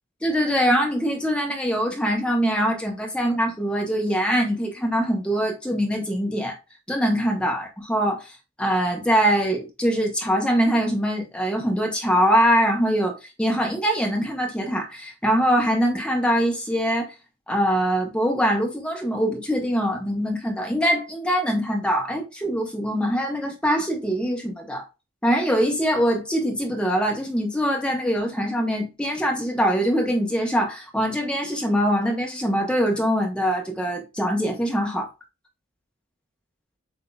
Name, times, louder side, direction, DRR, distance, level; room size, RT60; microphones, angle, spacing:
voice 1, 0.2-6.6 6.9-8.3 8.6-13.1 13.4-17.1 17.5-24.8 25.2-35.1, equal, 5° left, 0.9 m, -23 dB
7.9 x 2.7 x 2.3 m
head